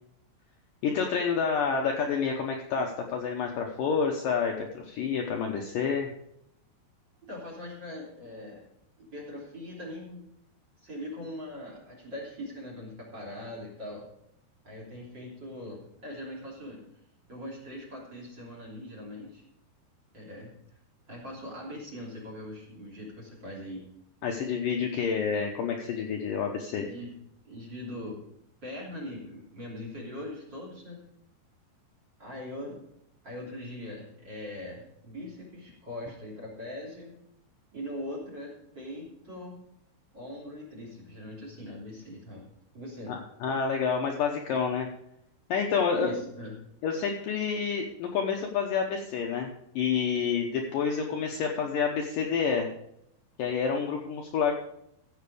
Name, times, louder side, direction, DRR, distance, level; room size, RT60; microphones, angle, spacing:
voice 1, 0.8-6.1 24.2-26.9 43.1-44.9 45.5-46.1 46.8-52.7 53.4-54.5, left 6 dB, 75° left, 2 dB, 2.2 m, -28 dB
voice 2, 7.3-8.6 9.0-10.2 10.8-14.0 14.6-16.8 17.3-19.4 20.1-20.5 21.1-23.8 26.8-28.2 28.6-31.1 32.2-32.8 33.2-37.1 37.7-39.6 40.1-42.4 42.7-43.2 46.0-46.5, left 1 dB, 30° right, -1 dB, 3.3 m, -41 dB
15.0 x 7.0 x 4.9 m, 0.77 s
omnidirectional pair, 4.9 m